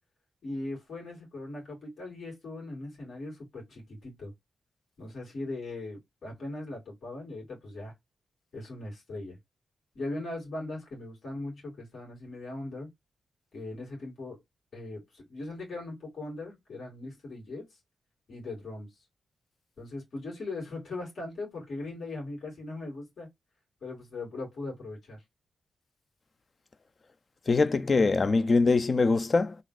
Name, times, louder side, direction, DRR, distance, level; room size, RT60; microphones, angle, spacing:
voice 1, 0.4-4.3 5.0-7.9 8.5-9.4 9.9-12.9 13.5-14.4 14.7-17.7 18.3-18.9 19.8-23.3 23.8-25.2, left 2 dB, 70° left, 2.2 m, -39 dB
voice 2, 27.5-29.5, left 3 dB, 45° left, 0.5 m, -23 dB
3.8 x 2.5 x 2.4 m
cardioid pair, 50°, 0 cm